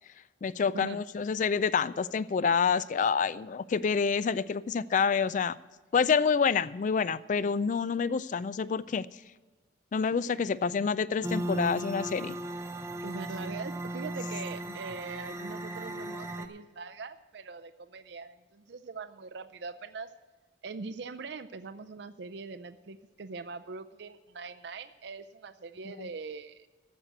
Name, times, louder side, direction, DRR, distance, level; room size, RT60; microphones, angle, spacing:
voice 1, 0.4-5.6 5.9-9.1 9.9-12.4 26.0-26.1, left 6 dB, 40° left, 18 dB, 0.3 m, -27 dB
sound 1, 11.2-16.5, right 1 dB, 15° right, 0.7 m, -36 dB
voice 2, 13.0-20.1 20.6-26.7, right 4 dB, 60° right, 10 dB, 0.5 m, -42 dB
13.0 x 7.4 x 7.8 m, 1.2 s
head